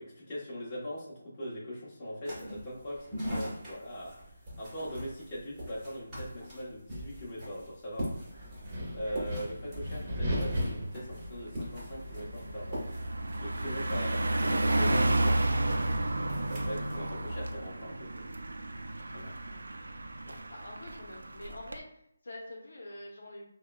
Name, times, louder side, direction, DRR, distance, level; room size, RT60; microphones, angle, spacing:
voice 1, 0.0-4.1 4.6-8.2 8.9-12.8 13.3-15.9 16.5-18.4 19.1-19.5 20.3-20.4, equal, 20° left, -8 dB, 1.2 m, -41 dB
sound 1, 2.2-17.0, equal, 10° right, 1.5 m, -43 dB
Wind, 8.0-17.6, equal, 30° right, 1.2 m, -39 dB
Car passing by, 10.2-10.4 10.8-21.8, right 1 dB, 80° right, 0.5 m, -32 dB
voice 2, 19.4-20.0 20.5-23.5, left 1 dB, 65° left, -1 dB, 1.0 m, -47 dB
6.3 x 2.3 x 2.3 m, 0.75 s
figure-of-eight pair, 165°, 0 cm